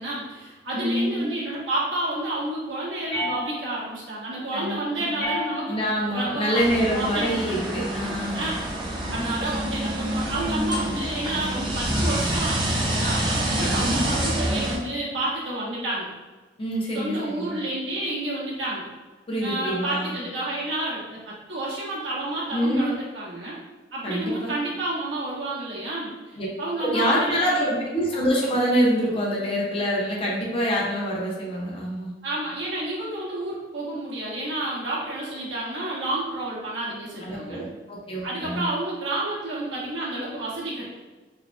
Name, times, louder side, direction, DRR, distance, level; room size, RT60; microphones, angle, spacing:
voice 1, 0.0-5.8 6.1-7.6 8.3-8.6 9.1-16.1 16.9-18.8 19.4-23.6 23.9-27.6 32.2-37.6 38.2-40.9, right 1 dB, 90° right, -7 dB, 1.4 m, -30 dB
voice 2, 0.7-1.3 4.5-4.8 5.1-5.3 5.7-8.5 13.6-14.2 16.6-17.6 19.3-20.2 22.5-23.0 24.0-24.5 26.4-26.5 26.8-32.1 37.2-38.7, equal, 30° left, -3 dB, 0.8 m, -26 dB
sound 1, 3.1-4.0 5.2-6.0 7.2-8.0, left 1 dB, 55° left, 1.5 m, -33 dB
sound 2, 6.5-14.8, right 1 dB, 25° right, 0.7 m, -27 dB
4.0 x 3.1 x 2.3 m, 1.3 s
head